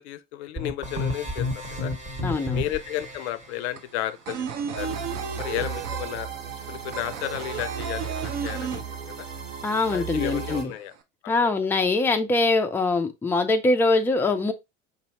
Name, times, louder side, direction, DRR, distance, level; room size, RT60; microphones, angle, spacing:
voice 1, 0.0-1.9 2.5-4.5 4.8-5.0 5.4-6.3 6.7-9.3 9.9-10.9 11.2-11.5, left 13 dB, 60° left, 0.5 m, -33 dB
sound 1, 0.6-3.3, left 2 dB, 20° right, 1.5 m, -31 dB
voice 2, 2.2-2.6 9.6-10.7 11.3-14.5, left 3 dB, 5° left, 0.3 m, -23 dB
sound 2, 2.5-2.6 2.9-9.5 9.7-9.8 10.1-10.9, right 7 dB, 45° right, 0.7 m, -34 dB
sound 3, 4.8-10.6, right 6 dB, 80° right, 0.8 m, -35 dB
5.2 x 2.7 x 2.8 m
figure-of-eight pair, 70°, 37 cm